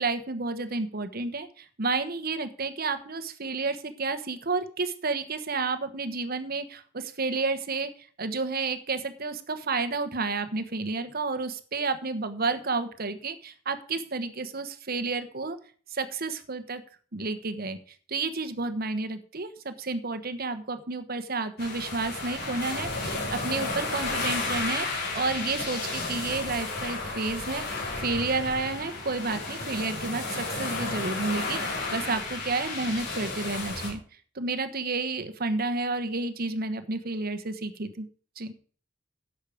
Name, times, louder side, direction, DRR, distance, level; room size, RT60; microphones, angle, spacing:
voice 1, 0.0-7.9 8.2-15.6 15.9-16.8 17.1-17.8 18.1-24.9 25.1-27.6 28.0-34.0 34.3-38.1 38.4-38.5, right 3 dB, 50° right, 9 dB, 1.2 m, -31 dB
sound 1, 21.6-33.9, left 3 dB, 55° left, 5.5 m, -33 dB
12.0 x 8.4 x 5.0 m, 0.44 s
head